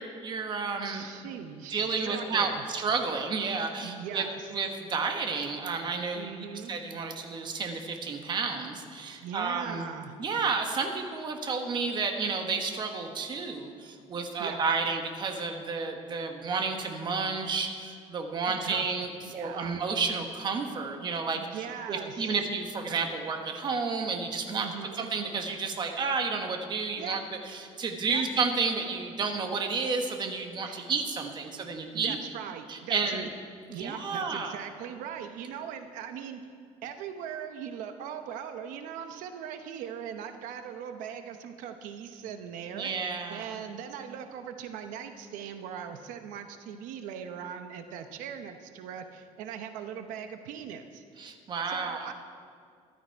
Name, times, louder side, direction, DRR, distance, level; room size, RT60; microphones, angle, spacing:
voice 1, 0.0-1.0 1.7-4.2 4.5-9.9 10.2-24.7 24.9-27.2 27.5-32.2 32.7-33.3 33.8-34.6 42.7-43.5 51.2-52.1, right 4 dB, 35° right, 4 dB, 1.3 m, -31 dB
voice 2, 0.8-2.6 3.8-4.5 6.1-6.7 9.2-10.2 14.4-14.7 18.6-19.7 21.3-22.4 24.6-25.0 27.0-27.2 28.1-28.2 30.6-30.9 31.9-33.2 33.7-36.4 36.8-51.0 51.7-52.1, right 8 dB, 85° right, 7 dB, 0.9 m, -40 dB
14.5 x 12.5 x 4.6 m, 2.2 s
cardioid pair, 145°, 13 cm